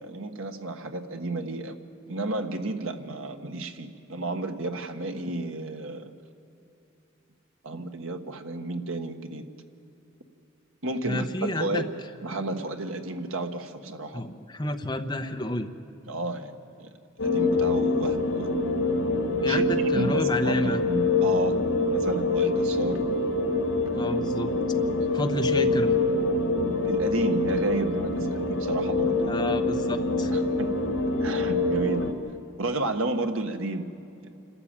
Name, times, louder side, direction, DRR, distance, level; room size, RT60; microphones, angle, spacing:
voice 1, 0.0-1.8 2.1-6.1 7.6-9.4 10.8-11.9 12.2-14.2 16.1-16.5 16.8-16.9 17.2-18.5 19.5-19.6 19.9-21.6 21.9-23.0 24.8-25.3 26.8-29.5 30.3-30.7 31.2-32.1 32.6-34.0 34.2-34.3, right 2 dB, 80° right, 6 dB, 1.4 m, -32 dB
voice 2, 11.0-11.8 14.1-15.7 19.4-20.8 24.0-24.5 25.1-25.9 29.3-30.3, left 1 dB, 20° left, 5 dB, 0.9 m, -30 dB
sound 1, 17.2-32.1, left 2 dB, 75° left, 2.5 m, -25 dB
27.5 x 13.0 x 8.8 m, 2.8 s
head